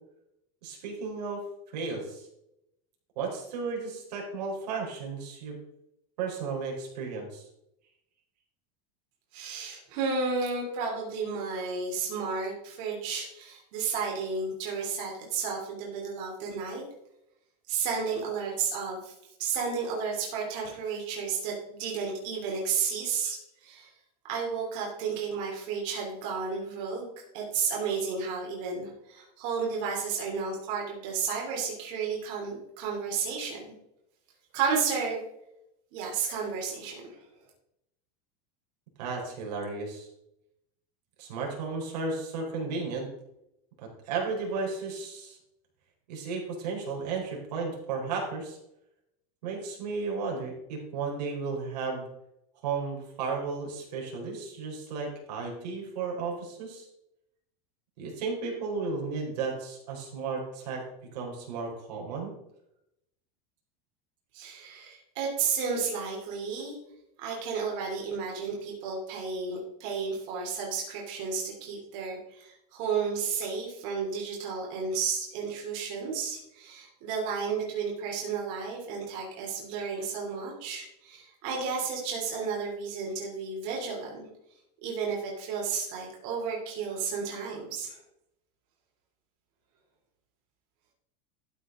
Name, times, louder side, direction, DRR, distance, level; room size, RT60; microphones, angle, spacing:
voice 1, 0.6-2.3 3.2-5.6 6.2-7.5 39.0-40.1 41.2-43.1 43.8-45.4 46.1-48.6 49.4-52.1 52.6-56.9 58.0-60.8 61.1-62.3, right 4 dB, 90° right, 0 dB, 4.2 m, -34 dB
voice 2, 9.3-16.8 17.7-19.1 19.4-23.9 24.3-33.6 34.5-35.2 35.9-37.2 64.3-66.8 67.2-84.2 84.8-88.0, right 5 dB, 50° right, -2 dB, 3.1 m, -32 dB
12.5 x 8.1 x 3.7 m, 0.81 s
supercardioid pair, 175°, 20 cm